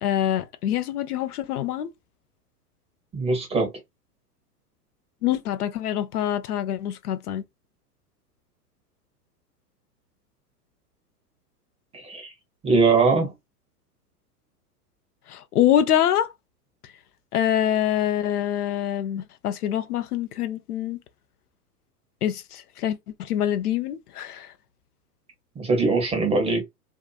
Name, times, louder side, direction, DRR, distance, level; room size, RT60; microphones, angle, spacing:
voice 1, 0.0-1.9 5.2-7.4 15.3-16.3 17.3-21.0 22.2-24.5, left 11 dB, 70° left, 0.5 m, -25 dB
voice 2, 3.1-3.7 11.9-12.3 12.6-13.3 25.6-26.6, right 4 dB, 10° right, 0.7 m, -21 dB
2.7 x 2.3 x 2.3 m
figure-of-eight pair, 105°, 49 cm